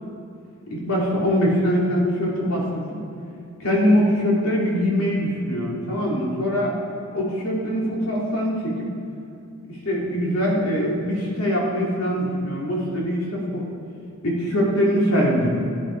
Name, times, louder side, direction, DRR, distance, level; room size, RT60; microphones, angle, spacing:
voice 1, 0.7-3.0 3.6-6.8 7.1-8.9 9.7-13.7 14.2-15.5, equal, 80° left, -4 dB, 2.8 m, -22 dB
16.5 x 10.0 x 4.5 m, 2.5 s
head